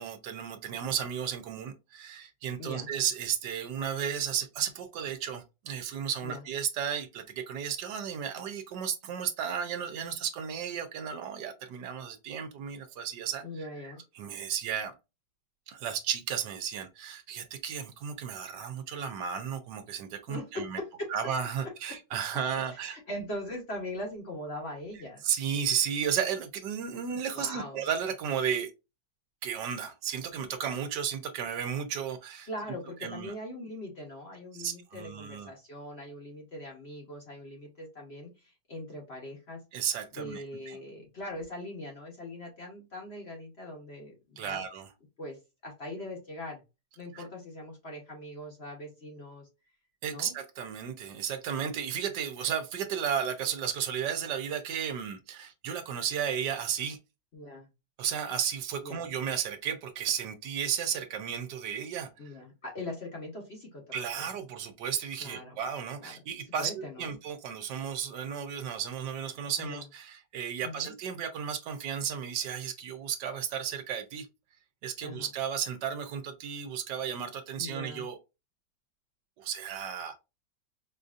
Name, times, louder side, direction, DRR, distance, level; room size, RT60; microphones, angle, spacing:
voice 1, 0.0-13.7 14.1-15.0 15.7-20.8 21.1-23.0 25.2-28.7 29.4-32.5 33.0-33.3 34.6-35.5 39.7-40.8 44.4-44.9 47.1-47.2 50.0-57.0 58.0-62.3 63.9-74.3 74.8-78.2 79.4-80.2, right 8 dB, 75° right, 1.2 m, -34 dB
voice 2, 2.6-2.9 6.2-6.4 13.4-14.0 20.3-21.1 21.9-22.0 22.8-25.2 27.3-27.8 32.5-39.6 40.1-44.6 45.2-45.4 45.6-46.6 47.0-49.5 50.1-50.3 57.3-57.7 58.8-59.0 62.2-63.8 64.1-64.2 65.2-65.6 66.0-66.1 66.6-67.2 69.6-69.8 70.6-70.9 75.0-75.3 77.6-78.0, left 1 dB, 45° left, 1.0 m, -41 dB
4.8 x 2.6 x 2.4 m
omnidirectional pair, 2.0 m